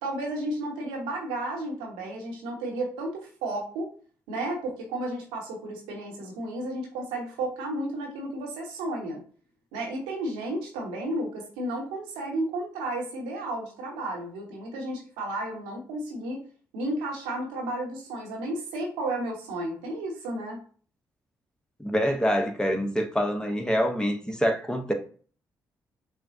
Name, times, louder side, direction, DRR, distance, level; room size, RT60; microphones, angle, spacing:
voice 1, 0.0-3.9 4.3-9.2 9.7-16.4 16.7-20.6, right 1 dB, 80° right, 0.9 m, -33 dB
voice 2, 21.8-24.9, equal, 10° left, 0.9 m, -26 dB
5.7 x 2.1 x 2.7 m
hypercardioid pair, 40°, 9 cm